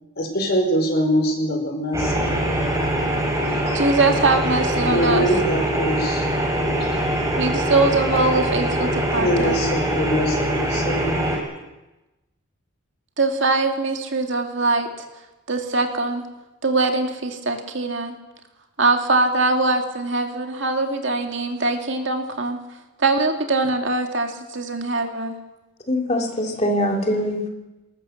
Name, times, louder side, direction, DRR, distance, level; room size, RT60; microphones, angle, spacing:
voice 1, 0.2-2.4 3.7-3.8 4.9-6.3 9.2-11.3, equal, 50° left, 3 dB, 5.2 m, -23 dB
sound 1, 1.9-11.4, right 1 dB, 15° right, 4.2 m, -23 dB
voice 2, 3.7-5.3 7.4-9.6 13.2-14.9 15.5-16.2 16.6-18.1 18.8-22.6 23.0-25.4, right 3 dB, 60° right, 4 dB, 2.3 m, -22 dB
voice 3, 25.9-27.5, left 1 dB, 30° left, 2 dB, 2.8 m, -22 dB
21.0 x 19.5 x 7.2 m, 1.1 s
head